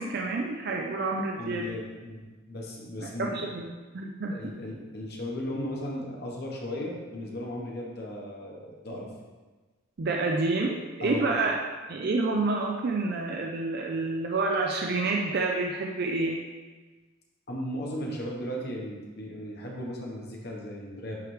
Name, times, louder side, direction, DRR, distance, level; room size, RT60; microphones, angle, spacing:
voice 1, 0.0-1.7 3.0-3.7 3.9-4.4 10.0-11.6 11.9-16.4, right 3 dB, 45° right, 0 dB, 0.4 m, -28 dB
voice 2, 1.4-3.5 4.2-9.1 11.0-11.4 17.5-21.2, left 1 dB, 45° left, -1 dB, 1.0 m, -36 dB
9.4 x 3.3 x 3.2 m, 1.3 s
head